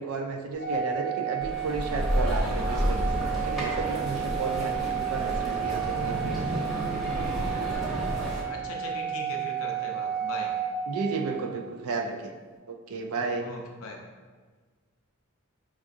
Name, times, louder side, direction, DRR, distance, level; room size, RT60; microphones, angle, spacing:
voice 1, 0.0-6.7 10.9-12.3 12.7-13.5, right 4 dB, 75° right, 4 dB, 0.4 m, -33 dB
Organ, 0.6-11.4, right 9 dB, 40° right, 0.8 m, -32 dB
sound 1, 1.4-8.4, equal, ahead, 0.8 m, -30 dB
voice 2, 8.5-10.6 13.4-14.0, left 2 dB, 65° left, 1 dB, 0.5 m, -39 dB
4.7 x 2.4 x 2.6 m, 1.5 s
head